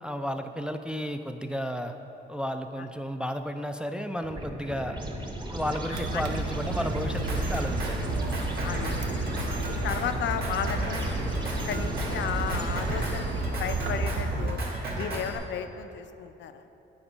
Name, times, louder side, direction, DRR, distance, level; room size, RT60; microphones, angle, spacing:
voice 1, 0.0-1.9 2.3-5.0 5.5-8.0, equal, 5° right, 6 dB, 0.3 m, -33 dB
sound 1, 4.2-13.7, right 1 dB, 20° right, 0.9 m, -36 dB
sound 2, 5.9-14.6, right 2 dB, 70° right, 0.8 m, -33 dB
Drum kit, 7.0-15.4, right 1 dB, 50° right, 1.7 m, -34 dB
voice 2, 8.6-8.9 9.8-11.1 11.7-14.6 14.9-16.6, left 8 dB, 65° left, 9 dB, 0.5 m, -34 dB
8.7 x 4.2 x 5.4 m, 3.0 s
cardioid pair, 90°, 20 cm